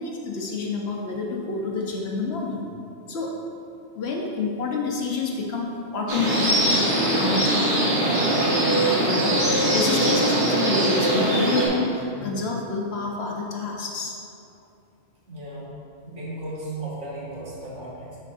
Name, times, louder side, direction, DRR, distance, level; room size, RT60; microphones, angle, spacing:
voice 1, 0.0-2.6 3.1-3.3 3.9-6.5 7.1-7.9 8.3-9.3 9.7-14.1, left 4 dB, 60° left, -1 dB, 0.9 m, -28 dB
sound 1, 6.1-11.7, right 1 dB, 45° right, 1.2 m, -21 dB
voice 2, 15.3-15.8 16.0-18.2, right 1 dB, 70° right, -8 dB, 1.9 m, -35 dB
10.0 x 4.1 x 2.5 m, 2.6 s
omnidirectional pair, 1.3 m